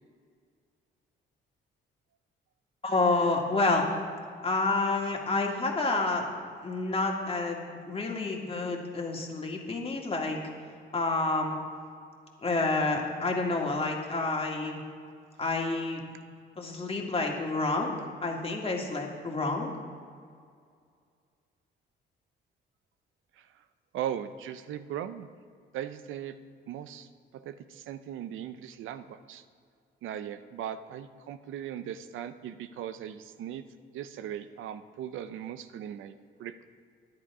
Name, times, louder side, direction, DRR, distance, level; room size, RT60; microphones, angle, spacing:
voice 1, 2.8-3.8 4.4-6.2 6.6-10.4 10.9-11.6 12.4-14.8 15.4-16.0 16.6-18.0 18.2-19.7, left 3 dB, 30° left, 1 dB, 2.0 m, -29 dB
voice 2, 23.9-25.3 25.7-26.4 26.7-27.1 27.3-29.4 30.0-33.6 33.9-36.6, right 10 dB, 80° right, 12 dB, 0.6 m, -38 dB
10.5 x 9.7 x 4.9 m, 2.2 s
cardioid pair, 90°, 20 cm